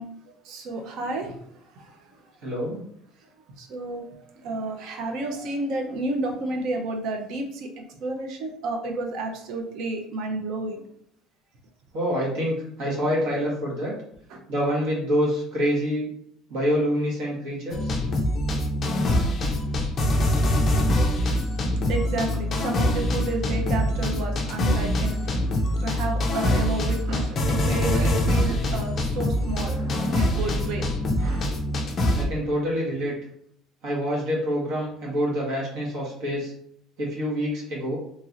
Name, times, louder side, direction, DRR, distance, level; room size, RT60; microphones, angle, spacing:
voice 1, 0.0-1.3 1.8-2.0 3.6-10.8 14.3-14.4 21.7-31.6, right 2 dB, 55° right, 3 dB, 0.6 m, -31 dB
voice 2, 2.4-2.8 11.9-13.9 14.5-16.1 16.5-17.9 32.1-33.1 33.8-36.5 37.0-38.0, equal, 70° right, -4 dB, 1.4 m, -26 dB
sound 1, 17.7-32.2, left 1 dB, 30° left, 0.4 m, -24 dB
2.9 x 2.9 x 2.5 m, 0.67 s
cardioid pair, 170°, 0 cm